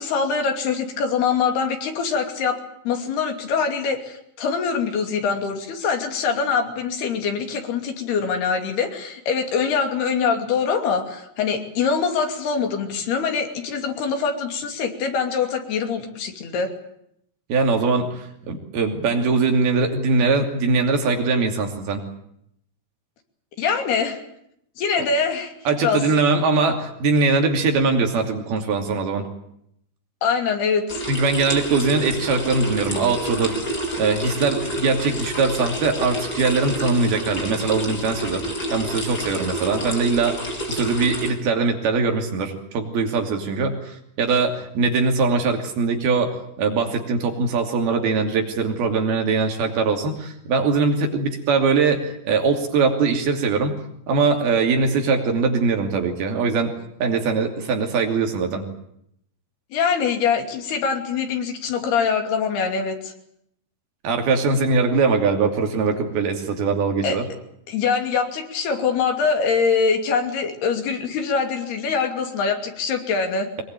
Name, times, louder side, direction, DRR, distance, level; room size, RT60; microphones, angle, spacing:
voice 1, 0.0-2.6 2.8-16.7 23.6-24.2 24.8-25.5 25.8-26.0 30.2-31.1 59.7-63.1 67.0-67.2 67.7-73.5, left 5 dB, 80° left, 5 dB, 4.8 m, -23 dB
voice 2, 17.5-22.0 25.7-29.3 31.1-38.4 38.7-53.8 54.1-56.7 57.0-58.6 64.0-67.3, right 4 dB, 75° right, 3 dB, 4.7 m, -21 dB
sound 1, 30.9-41.3, equal, 25° left, 4.4 m, -29 dB
23.5 x 21.0 x 9.1 m, 0.75 s
omnidirectional pair, 4.5 m